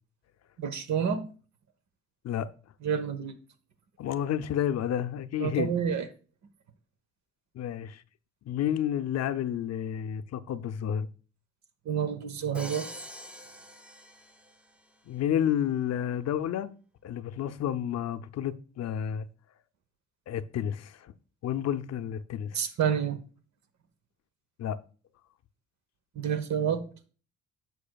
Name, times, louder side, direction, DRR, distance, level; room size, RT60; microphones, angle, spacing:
voice 1, 0.6-1.2 2.8-3.4 5.4-6.1 11.8-12.9 22.5-23.2 26.1-26.8, right 7 dB, 65° right, 1.0 m, -29 dB
voice 2, 4.0-5.7 7.5-8.0 8.5-11.1 15.1-16.7 17.0-19.3 20.3-21.1 21.4-22.6 24.6-24.8, left 10 dB, 60° left, 0.5 m, -30 dB
Crash cymbal, 12.5-14.8, equal, 5° right, 0.7 m, -44 dB
10.0 x 6.4 x 2.3 m
cardioid pair, 90°, 30 cm